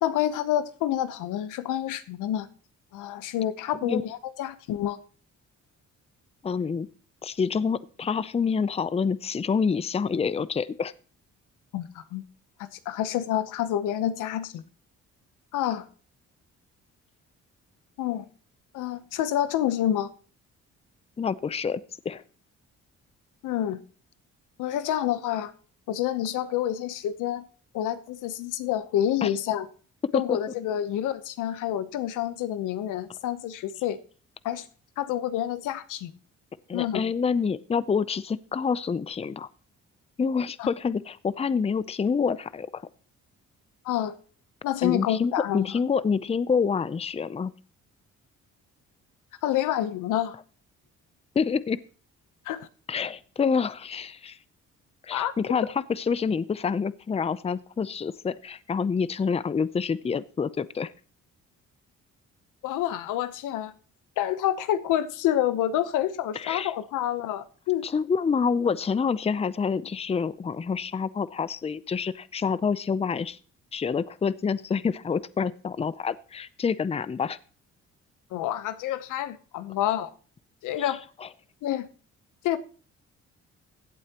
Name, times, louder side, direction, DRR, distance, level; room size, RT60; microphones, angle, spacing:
voice 1, 0.0-2.5 2.9-5.0 11.7-12.2 12.9-14.6 15.5-15.9 18.0-18.2 18.7-20.1 23.4-23.8 24.6-25.5 25.9-27.5 27.7-29.7 30.1-34.0 34.4-34.7 35.0-36.1 36.7-37.0 40.6-40.7 43.8-44.1 44.6-45.7 49.4-50.3 52.5-52.7 55.1-55.3 62.6-63.7 64.2-67.8 78.3-80.1 80.6-81.0 81.6-81.9 82.4-82.6, left 12 dB, 90° left, 0.9 m, -28 dB
voice 2, 6.4-6.9 7.2-10.9 21.2-22.2 29.2-29.3 30.1-30.4 36.7-39.5 40.2-42.8 44.8-47.5 51.3-51.8 52.9-54.4 55.0-60.9 66.3-66.7 67.8-73.4 73.7-77.4 80.8-80.9 81.2-81.3, left 5 dB, 20° left, 0.5 m, -27 dB
16.0 x 8.2 x 2.9 m
cardioid pair, 90°, 30 cm